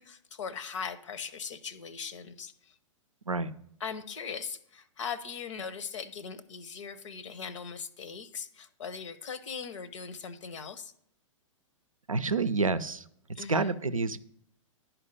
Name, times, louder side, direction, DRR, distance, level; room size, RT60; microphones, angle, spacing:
voice 1, 0.0-2.5 3.8-10.9 13.4-13.7, left 6 dB, 65° left, 14 dB, 0.8 m, -39 dB
voice 2, 12.1-13.1 13.5-14.2, right 4 dB, 90° right, 14 dB, 0.5 m, -28 dB
11.0 x 4.6 x 5.3 m, 0.70 s
figure-of-eight pair, 105°, 17 cm